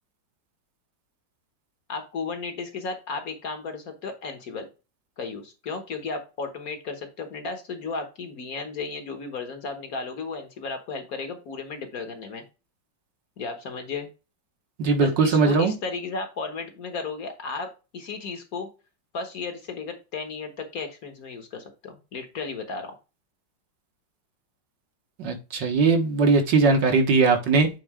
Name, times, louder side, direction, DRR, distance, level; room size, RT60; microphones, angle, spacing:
voice 1, 1.9-4.7 5.2-12.4 13.4-14.1 15.0-18.7 19.1-23.0, left 4 dB, 55° left, 6 dB, 1.6 m, -34 dB
voice 2, 14.8-15.7 25.2-27.7, right 4 dB, 70° right, 4 dB, 2.1 m, -20 dB
8.5 x 4.0 x 3.6 m, 0.29 s
omnidirectional pair, 2.0 m